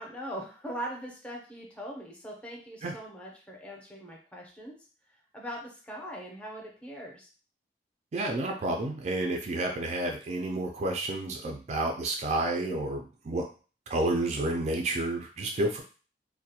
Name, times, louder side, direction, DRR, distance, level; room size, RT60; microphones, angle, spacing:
voice 1, 0.0-4.8 5.3-7.3, equal, 5° left, -2 dB, 0.6 m, -41 dB
voice 2, 8.1-13.4 13.9-15.8, right 2 dB, 40° right, 2 dB, 0.3 m, -30 dB
2.3 x 2.1 x 2.7 m, 0.37 s
head